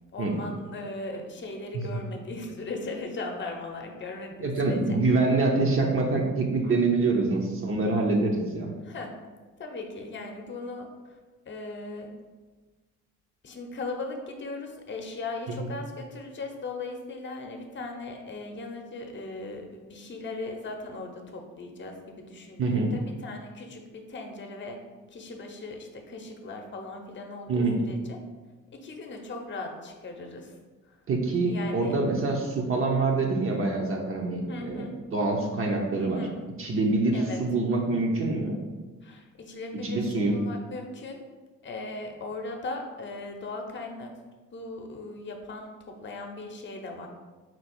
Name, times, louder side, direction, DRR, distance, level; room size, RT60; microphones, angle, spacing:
voice 1, 0.1-5.0 6.6-6.7 7.1-7.2 8.8-9.1 9.6-10.9 11.5-12.1 13.4-24.8 25.1-28.2 28.7-30.5 30.9-31.0 31.4-32.0 34.5-34.9 35.9-36.4 37.1-37.4 39.0-41.2 41.6-44.1 44.5-47.1, left 2 dB, 40° left, 3 dB, 0.8 m, -38 dB
voice 2, 4.4-8.7 15.6-15.7 22.6-22.9 27.5-27.8 31.1-36.2 36.6-38.6 39.8-40.4, right 3 dB, 45° right, 1 dB, 0.7 m, -25 dB
4.5 x 2.3 x 4.4 m, 1.3 s
cardioid pair, 90°, 30 cm